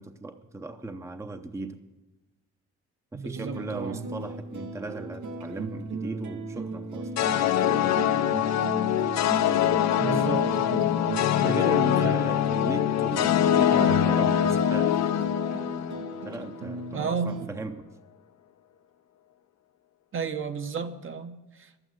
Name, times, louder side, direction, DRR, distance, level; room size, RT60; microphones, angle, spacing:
voice 1, 0.0-1.8 3.1-8.0 11.4-15.0 16.2-17.8, right 2 dB, 10° right, 8 dB, 0.7 m, -37 dB
voice 2, 3.1-4.0 10.0-11.0 11.4-12.3 16.9-17.5 20.1-21.9, right 5 dB, 45° right, 8 dB, 0.9 m, -33 dB
sound 1, 3.3-17.5, right 3 dB, 80° right, 1.3 m, -36 dB
sound 2, 7.2-16.5, left 10 dB, 60° left, 0.6 m, -24 dB
11.5 x 9.0 x 7.7 m, 1.1 s
cardioid pair, 90°, 30 cm